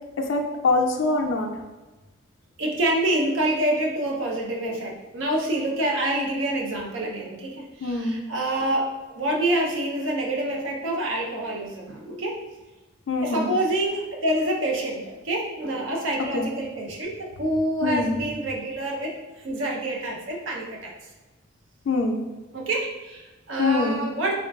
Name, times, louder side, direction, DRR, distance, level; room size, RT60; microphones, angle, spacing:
voice 1, 0.2-1.5 7.8-8.2 13.1-13.5 16.3-16.5 17.8-18.2 21.9-22.2 23.6-24.0, left 3 dB, 75° left, 3 dB, 0.4 m, -24 dB
voice 2, 2.6-12.4 13.2-20.9 22.5-24.3, right 1 dB, 80° right, -1 dB, 0.6 m, -27 dB
3.7 x 2.3 x 2.3 m, 1.1 s
head